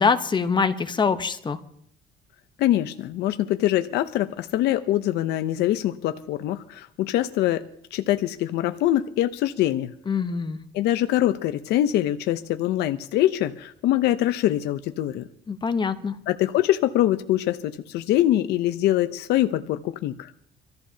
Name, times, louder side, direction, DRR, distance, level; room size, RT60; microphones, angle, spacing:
voice 1, 0.0-1.6 10.1-10.6 15.5-16.1, left 5 dB, 25° left, 11 dB, 0.9 m, -24 dB
voice 2, 2.6-7.6 7.9-9.9 10.7-15.2 16.3-20.3, left 13 dB, 80° left, 10 dB, 0.7 m, -23 dB
25.5 x 14.0 x 2.8 m, 0.69 s
cardioid pair, 110°, 17 cm